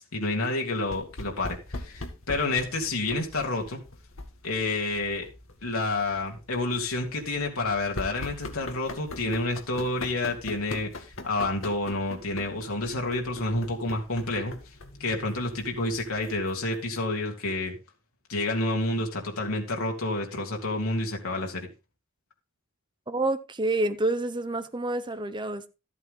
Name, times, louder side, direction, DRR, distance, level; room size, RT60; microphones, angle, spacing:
voice 1, 0.1-3.8 4.4-5.2 5.6-14.5 15.0-17.7 18.3-21.7, left 2 dB, 85° left, 3.0 m, -29 dB
sound 1, 0.8-17.0, left 2 dB, 70° left, 2.0 m, -42 dB
voice 2, 23.1-25.7, right 2 dB, 20° right, 0.8 m, -28 dB
13.0 x 8.3 x 3.9 m
head